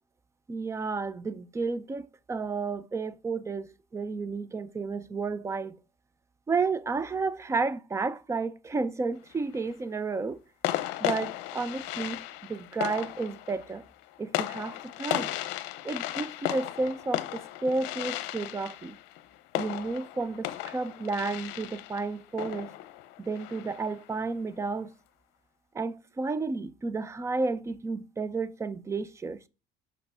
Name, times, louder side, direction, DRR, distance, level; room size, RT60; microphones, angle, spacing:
voice 1, 0.5-5.8 6.5-10.4 11.0-12.2 12.4-13.8 14.2-15.3 15.8-19.0 19.6-22.7 23.2-24.9 25.7-29.4, right 4 dB, 15° right, 0.6 m, -32 dB
sound 1, 9.1-9.7 10.6-24.0, left 15 dB, 70° left, 0.8 m, -35 dB
5.9 x 5.8 x 5.6 m
cardioid pair, 135°, 19 cm